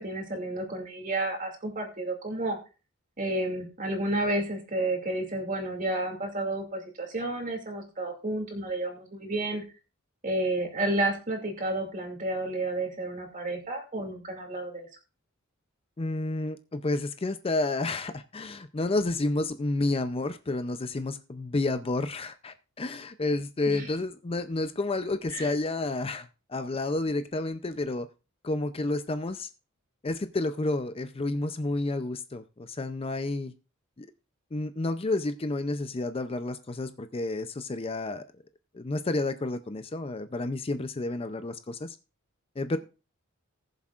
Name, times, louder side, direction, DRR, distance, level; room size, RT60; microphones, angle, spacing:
voice 1, 0.0-2.6 3.2-9.6 10.2-14.9 23.7-23.9 25.3-25.5, right 1 dB, 40° right, 2.5 m, -31 dB
voice 2, 16.0-28.1 28.4-29.5 30.0-33.5 34.0-34.1 34.5-38.2 38.7-42.0 42.6-42.8, left 2 dB, 25° left, 0.5 m, -30 dB
19.5 x 7.2 x 2.5 m
head